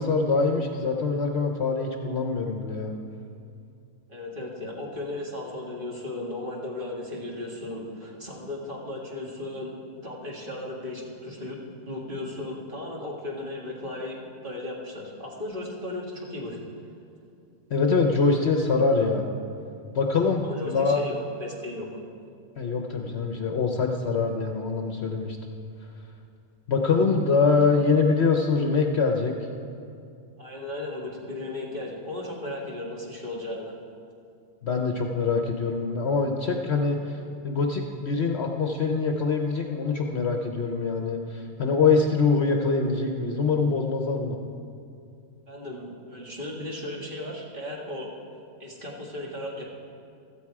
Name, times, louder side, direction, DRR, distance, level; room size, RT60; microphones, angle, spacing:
voice 1, 0.0-3.0 17.7-19.3 19.9-21.0 22.6-25.4 26.7-29.3 34.6-37.2 37.4-44.4, left 4 dB, 50° left, 3 dB, 1.0 m, -24 dB
voice 2, 4.1-9.7 10.0-11.6 11.8-16.6 20.4-21.9 30.4-33.8 45.5-48.1 48.6-49.6, left 1 dB, 35° right, -3 dB, 2.2 m, -35 dB
16.0 x 13.5 x 4.8 m, 2.5 s
omnidirectional pair, 1.5 m